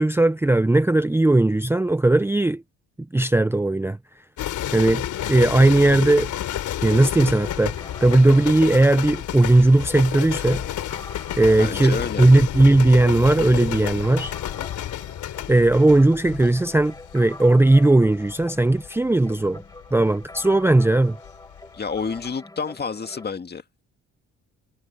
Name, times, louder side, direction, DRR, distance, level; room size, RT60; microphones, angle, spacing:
voice 1, 0.0-2.6 3.1-4.0 4.7-6.3 6.8-7.7 8.0-10.6 11.4-14.3 15.5-19.6 19.9-21.2, right 2 dB, 10° right, 0.7 m, -17 dB
sound 1, 4.4-21.6 21.9-22.3, left 12 dB, 75° left, 3.4 m, -31 dB
sound 2, 7.0-23.3, left 2 dB, 10° left, 5.8 m, -44 dB
voice 2, 11.6-12.3 21.7-23.8, left 5 dB, 35° left, 1.9 m, -29 dB
cardioid pair, 90°, 30 cm